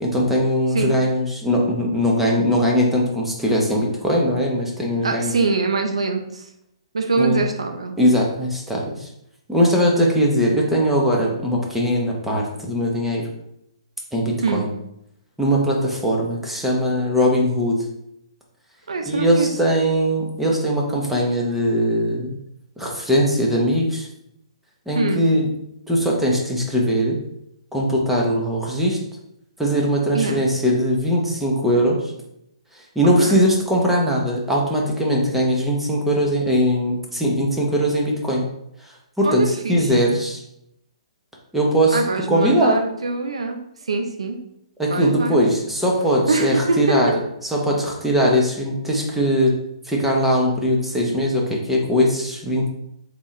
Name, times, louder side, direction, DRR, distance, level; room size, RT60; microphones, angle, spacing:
voice 1, 0.0-5.3 7.2-7.4 8.0-9.1 9.5-13.3 14.1-14.7 15.4-17.8 19.1-22.4 22.8-24.1 24.9-25.5 25.9-27.2 27.7-29.0 29.6-32.0 32.9-38.5 39.2-40.4 41.5-42.0 42.3-42.8 44.8-47.1 47.5-49.5 49.8-52.7, equal, 5° right, -2 dB, 0.9 m, -20 dB
voice 2, 5.0-6.5 6.9-8.0 14.4-14.7 18.9-19.6 24.9-25.2 30.1-30.4 33.2-33.5 39.2-40.0 41.9-44.4 44.9-45.4 46.3-47.0, right 3 dB, 85° right, 5 dB, 0.6 m, -24 dB
4.1 x 3.6 x 3.1 m, 0.79 s
hypercardioid pair, 145°, 3 cm